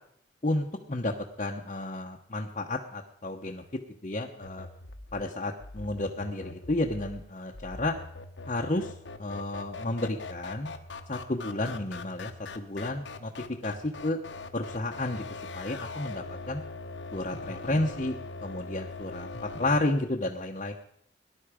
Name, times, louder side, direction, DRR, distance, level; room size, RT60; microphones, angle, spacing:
voice 1, 0.4-1.1 1.4-4.7 5.1-8.0 8.5-8.9 9.2-10.7 11.1-13.3 13.6-14.2 14.5-15.2 15.5-16.6 17.1-20.7, left 2 dB, 40° left, -1 dB, 0.9 m, -32 dB
sound 1, 4.4-19.8, left 3 dB, 80° left, 1.1 m, -42 dB
18.5 x 11.0 x 5.0 m, 0.69 s
head